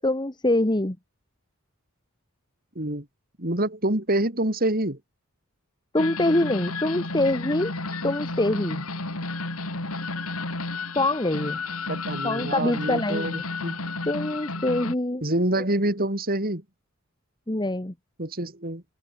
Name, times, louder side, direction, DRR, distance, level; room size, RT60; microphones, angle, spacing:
voice 1, 0.0-1.0 5.9-7.7 8.0-8.9 10.9-11.6 12.2-13.4 14.1-15.2 17.5-17.9, left 1 dB, 20° left, 1.4 m, -24 dB
voice 2, 2.8-3.1 3.4-5.0 11.9-13.8 15.2-16.6 18.2-18.8, right 1 dB, 45° right, 3.9 m, -26 dB
sound 1, 6.0-15.0, left 3 dB, 80° left, 4.6 m, -32 dB
open air
head